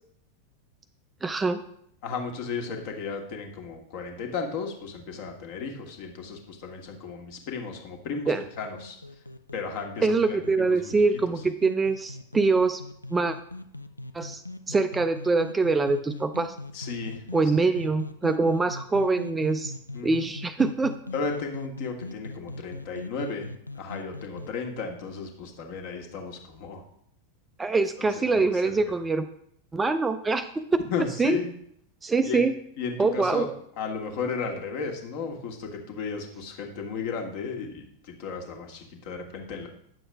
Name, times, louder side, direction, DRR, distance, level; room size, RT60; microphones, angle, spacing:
voice 1, 1.2-1.6 8.3-8.4 10.0-12.8 13.1-13.4 14.1-16.5 17.3-19.7 20.0-20.9 27.6-29.3 29.7-31.4 32.0-32.5 33.0-33.5, right 3 dB, 15° right, 10 dB, 0.4 m, -24 dB
voice 2, 2.0-9.0 9.5-10.9 16.7-17.2 17.6-17.7 19.9-20.2 21.1-23.5 23.7-26.8 28.2-28.8 30.9-31.5 32.2-32.4 32.8-33.5 33.8-39.7, left 5 dB, 45° left, 3 dB, 1.5 m, -34 dB
sound 1, 8.3-24.5, left 2 dB, 85° left, 0.4 m, -41 dB
9.2 x 7.0 x 3.4 m, 0.70 s
figure-of-eight pair, 90°, 0 cm